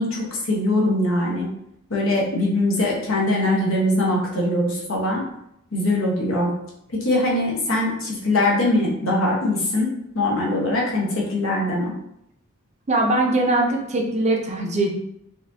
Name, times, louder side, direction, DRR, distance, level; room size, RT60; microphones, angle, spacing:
voice 1, 0.0-1.5 1.9-5.2 5.7-6.5 7.0-11.9, left 1 dB, 75° left, -3 dB, 1.1 m, -22 dB
voice 2, 12.9-14.9, right 2 dB, 35° right, 0 dB, 0.5 m, -21 dB
4.1 x 2.7 x 2.7 m, 0.78 s
head